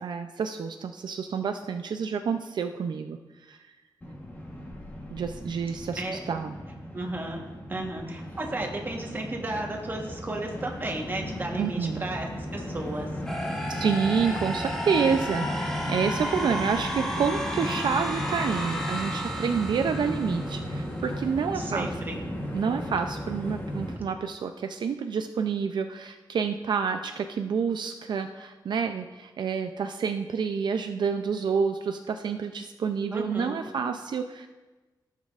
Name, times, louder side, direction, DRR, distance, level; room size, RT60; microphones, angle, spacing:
voice 1, 0.0-3.6 5.1-6.6 11.6-12.1 13.7-21.9 22.5-34.5, right 6 dB, 70° right, 6 dB, 0.4 m, -28 dB
Train, 4.0-24.0, equal, 25° left, 1.1 m, -35 dB
voice 2, 6.9-7.4 7.7-13.1 21.5-22.2 33.1-33.6, right 2 dB, 25° right, 1 dB, 1.2 m, -33 dB
sound 1, 13.3-21.2, equal, 5° left, 1.1 m, -33 dB
15.0 x 7.4 x 2.4 m, 1.2 s
wide cardioid pair, 175°, 8 cm